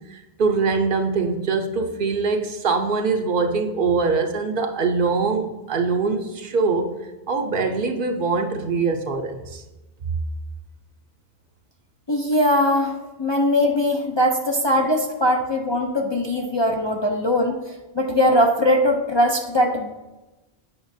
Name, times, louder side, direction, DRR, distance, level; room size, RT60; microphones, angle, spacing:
voice 1, 0.1-6.9 7.3-9.6, right 4 dB, 60° right, 5 dB, 0.8 m, -23 dB
voice 2, 12.1-17.6 17.9-19.9, left 1 dB, 35° left, 0 dB, 0.4 m, -20 dB
8.6 x 5.5 x 2.7 m, 1.1 s
omnidirectional pair, 1.1 m